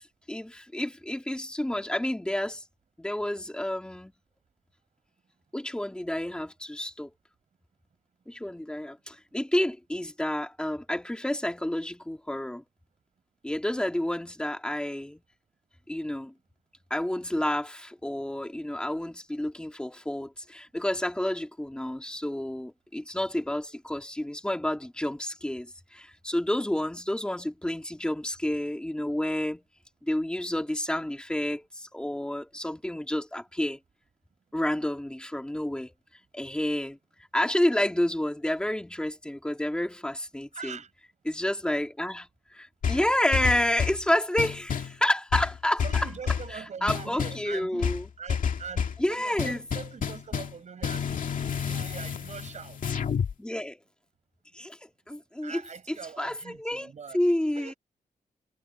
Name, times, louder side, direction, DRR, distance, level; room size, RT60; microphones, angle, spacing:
voice 1, 0.0-2.6 3.0-4.1 5.5-7.1 8.3-12.6 13.4-15.2 15.9-16.3 16.9-29.6 30.0-33.8 34.5-35.9 36.3-37.0 37.3-40.8 41.2-46.1 46.5-48.1 49.0-49.6 53.4-53.8 54.5-55.6 55.9-57.7, left 1 dB, 5° left, 2.7 m, -30 dB
voice 2, 40.5-40.9 45.8-51.2 51.7-52.8 55.4-57.8, right 6 dB, 55° right, 6.3 m, -43 dB
sound 1, 42.8-44.0 44.4-45.0 45.3-46.5 46.9-47.4 47.8-49.0 49.4-50.6 50.8-53.3, left 7 dB, 65° left, 2.2 m, -30 dB
wide cardioid pair, 140°, 15 cm